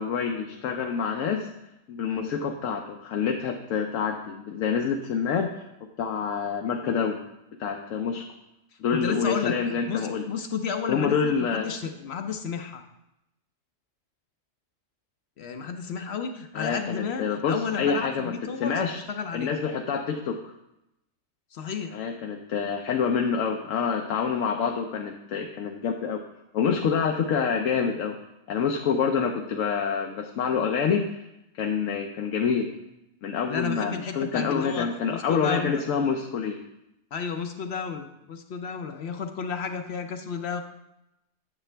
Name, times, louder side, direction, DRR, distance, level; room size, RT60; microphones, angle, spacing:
voice 1, 0.0-1.5 1.9-7.2 7.6-8.3 8.8-10.2 10.9-11.7 16.5-19.0 19.3-20.5 21.9-26.2 26.5-28.2 28.5-31.3 31.6-32.7 33.2-36.6, left 6 dB, 85° left, 3 dB, 1.0 m, -27 dB
voice 2, 8.9-12.8 15.4-19.6 21.5-22.0 33.5-35.8 37.1-40.6, left 6 dB, 65° left, 6 dB, 0.8 m, -32 dB
9.6 x 6.9 x 3.3 m, 0.89 s
omnidirectional pair, 1.3 m